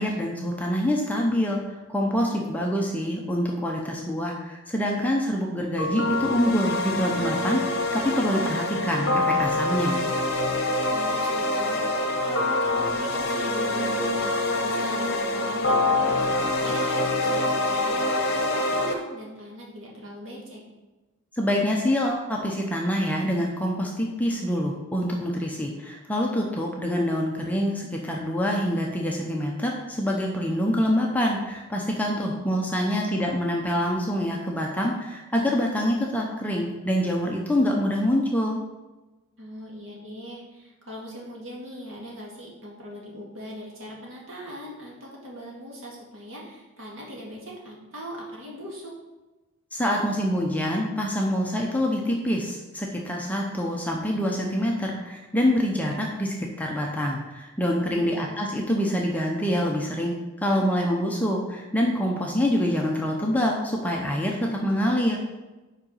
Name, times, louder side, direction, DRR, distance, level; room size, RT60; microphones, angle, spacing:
voice 1, 0.0-1.6 1.9-10.0 21.3-38.6 49.7-65.3, equal, 5° left, -1 dB, 0.6 m, -26 dB
sound 1, 5.8-18.9, left 2 dB, 50° left, 1.0 m, -25 dB
voice 2, 10.8-20.6 32.0-32.6 32.9-33.0 39.4-49.0 57.9-58.2, equal, 60° right, -3 dB, 1.9 m, -40 dB
5.4 x 4.9 x 5.5 m, 1.1 s
head